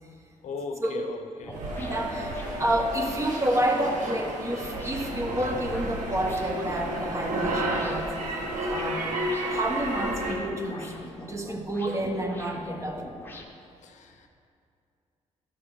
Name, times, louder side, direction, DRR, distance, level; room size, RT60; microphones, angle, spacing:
voice 1, 0.4-1.6 13.8-14.3, left 4 dB, 65° left, 5 dB, 0.9 m, -38 dB
sound 1, 1.4-13.4, left 2 dB, 15° left, 1.0 m, -43 dB
voice 2, 1.5-8.1 8.7-9.0 9.5-10.9 11.2-13.0, right 1 dB, 25° right, 2 dB, 1.3 m, -29 dB
sound 2, 1.5-10.3, right 1 dB, 75° right, 1.6 m, -32 dB
11.5 x 5.8 x 5.0 m, 2.4 s
cardioid pair, 100°, 13 cm